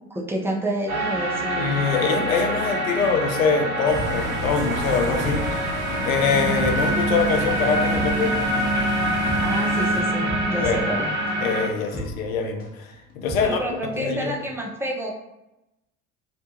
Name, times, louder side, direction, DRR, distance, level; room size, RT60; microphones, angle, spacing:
voice 1, 0.0-1.9 6.3-6.6 9.4-11.1 13.4-15.1, right 1 dB, 5° right, -2 dB, 0.4 m, -29 dB
sound 1, 0.9-11.7, right 1 dB, 80° right, 0.9 m, -25 dB
voice 2, 1.6-5.4 6.0-8.4 10.6-10.9 11.4-12.9 13.2-13.6 14.0-14.3, left 5 dB, 80° left, 4 dB, 0.5 m, -24 dB
sound 2, 3.9-14.2 14.4-14.5, equal, 20° left, 0.8 m, -36 dB
Bus, 3.9-10.0, equal, 50° right, 0.7 m, -32 dB
2.8 x 2.1 x 2.7 m, 0.92 s
figure-of-eight pair, 65°, 41 cm